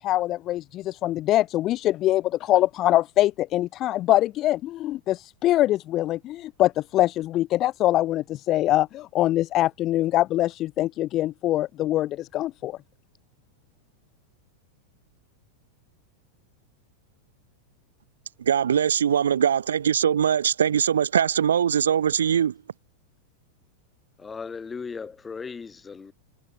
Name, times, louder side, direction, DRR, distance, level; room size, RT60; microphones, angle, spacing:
voice 1, 0.0-12.8, left 14 dB, 35° left, 0.4 m, -23 dB
voice 2, 18.4-22.6, right 8 dB, 65° right, 0.4 m, -22 dB
voice 3, 24.2-26.1, left 5 dB, 15° left, 3.4 m, -37 dB
figure-of-eight pair, 90°, 0 cm